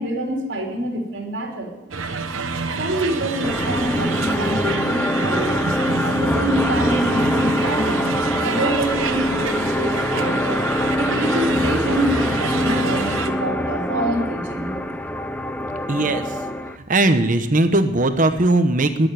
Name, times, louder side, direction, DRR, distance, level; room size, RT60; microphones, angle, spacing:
voice 1, 0.0-1.8 2.8-5.6 5.9-14.9, right 1 dB, 60° right, 0 dB, 3.4 m, -27 dB
sound 1, 1.9-13.3, right 4 dB, 80° right, 1.2 m, -28 dB
sound 2, 3.4-16.8, equal, 5° left, 0.5 m, -23 dB
voice 2, 15.9-16.2 16.9-19.1, right 2 dB, 40° right, 8 dB, 0.9 m, -18 dB
20.0 x 6.9 x 9.3 m, 1.2 s
head